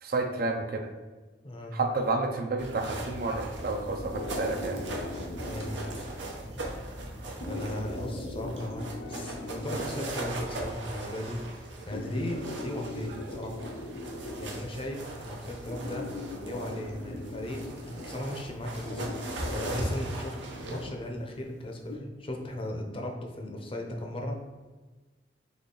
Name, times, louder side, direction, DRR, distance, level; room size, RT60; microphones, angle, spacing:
voice 1, 0.0-0.9 1.7-4.9, right 3 dB, 55° right, 5 dB, 0.5 m, -30 dB
voice 2, 1.4-1.8 5.4-5.8 7.4-13.6 14.4-16.1 16.4-20.3 20.7-24.4, left 1 dB, 30° left, 2 dB, 0.6 m, -37 dB
sound 1, 2.6-20.9, right 1 dB, 85° right, 0.9 m, -39 dB
sound 2, 4.0-22.0, left 1 dB, 80° left, 0.7 m, -41 dB
4.1 x 3.2 x 3.8 m, 1.3 s
head